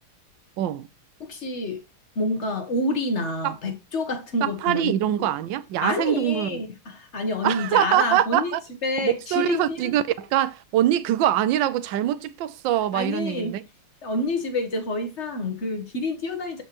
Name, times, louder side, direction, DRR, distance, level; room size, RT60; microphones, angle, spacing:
voice 1, 0.6-0.9 3.4-3.5 4.4-6.6 7.4-8.6 9.0-13.6, right 12 dB, 75° right, 1.2 m, -23 dB
voice 2, 1.2-1.8 2.1-5.3 5.8-8.5 8.8-9.8 12.9-13.6 14.0-16.6, left 2 dB, 40° left, 1.3 m, -28 dB
12.5 x 4.4 x 3.0 m
omnidirectional pair, 2.3 m